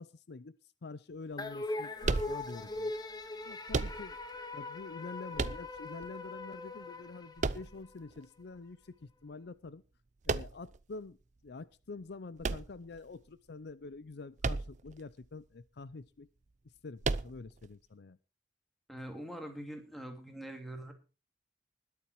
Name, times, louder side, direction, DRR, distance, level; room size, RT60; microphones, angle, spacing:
voice 1, 0.0-2.9 3.4-4.2 4.5-9.8 10.3-11.2 11.4-16.3 16.8-18.2, left 3 dB, 65° left, 17 dB, 0.6 m, -47 dB
sound 1, 1.4-7.9, left 2 dB, 25° left, 1.5 m, -41 dB
sound 2, 2.0-2.8 3.7-4.4 5.3-6.1 7.4-8.2 10.2-10.8 12.4-13.3 14.4-15.0 15.2-15.3 17.0-17.7, right 3 dB, 40° right, 0.6 m, -34 dB
voice 2, 18.9-20.9, right 1 dB, ahead, 4 dB, 2.6 m, -43 dB
20.5 x 7.2 x 4.6 m, 0.32 s
head